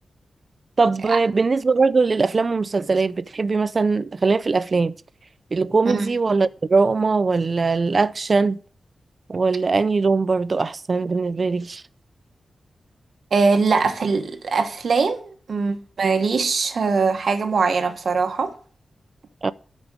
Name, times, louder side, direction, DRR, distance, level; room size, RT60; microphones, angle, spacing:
voice 1, 0.8-5.0 5.5-8.6 9.3-11.8 19.4-19.5, right 4 dB, 40° right, 0.5 m, -21 dB
voice 2, 13.3-18.5, right 4 dB, 60° right, 1.2 m, -21 dB
13.0 x 5.3 x 6.2 m
wide cardioid pair, 125°, 0 cm